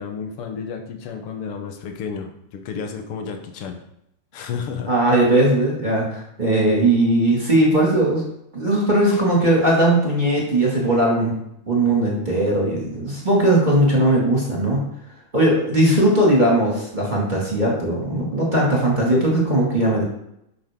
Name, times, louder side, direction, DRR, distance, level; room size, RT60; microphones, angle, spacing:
voice 1, 0.0-3.8 4.3-4.9 9.1-9.2, left 6 dB, 65° left, 5 dB, 1.4 m, -32 dB
voice 2, 4.9-8.2 8.5-11.4 11.7-14.8 15.3-20.0, right 1 dB, 15° right, -4 dB, 1.8 m, -18 dB
12.0 x 6.2 x 3.7 m, 0.77 s
omnidirectional pair, 3.8 m